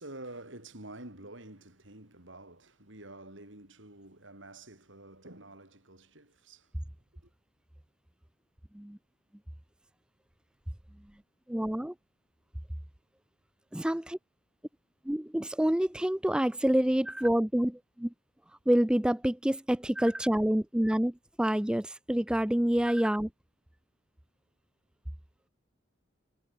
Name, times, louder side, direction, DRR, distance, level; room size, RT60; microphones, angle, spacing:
voice 1, 0.0-6.7 7.2-7.3, right 2 dB, 80° right, 6.7 m, -48 dB
voice 2, 11.5-11.9 13.7-14.2 15.1-18.1 18.7-23.3, equal, 5° right, 0.3 m, -27 dB
head